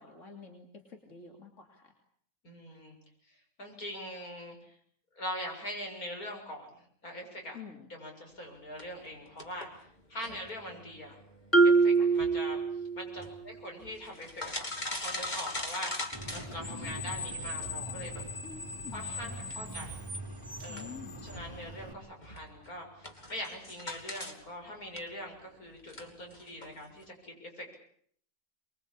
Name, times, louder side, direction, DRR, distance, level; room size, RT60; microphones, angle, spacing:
voice 1, 0.0-1.9 7.5-7.9 10.3-10.4 11.9-12.1 16.7-17.3 18.4-19.8 20.7-21.2, left 5 dB, 60° left, 3 dB, 3.1 m, -49 dB
voice 2, 2.4-3.0 3.6-4.8 5.1-7.6 7.9-11.2 11.6-12.6 13.0-18.2 18.9-20.0 20.6-21.0 21.2-27.7, equal, 85° left, 2 dB, 7.6 m, -42 dB
sound 1, 8.8-17.1 17.6-24.4 24.7-27.1, left 1 dB, 30° left, 3.0 m, -43 dB
Marimba xylophone, 11.5-13.3, right 4 dB, 10° left, 1.3 m, -24 dB
Screech, 16.1-21.9, left 2 dB, 15° right, 4.1 m, -40 dB
24.5 x 23.0 x 8.7 m, 0.64 s
omnidirectional pair, 1.5 m